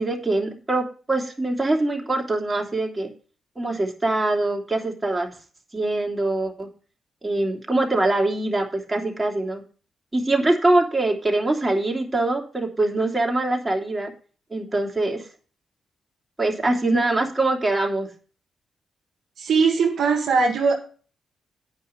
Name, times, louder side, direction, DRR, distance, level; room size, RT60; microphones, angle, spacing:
voice 1, 0.0-3.1 3.6-5.3 5.7-6.7 7.2-9.6 10.1-14.1 14.5-15.2 16.4-18.1, right 2 dB, 20° right, 1 dB, 2.8 m, -23 dB
voice 2, 19.4-20.7, right 5 dB, 70° right, 0 dB, 1.8 m, -20 dB
9.3 x 5.7 x 6.8 m, 0.39 s
supercardioid pair, 45°, 0 cm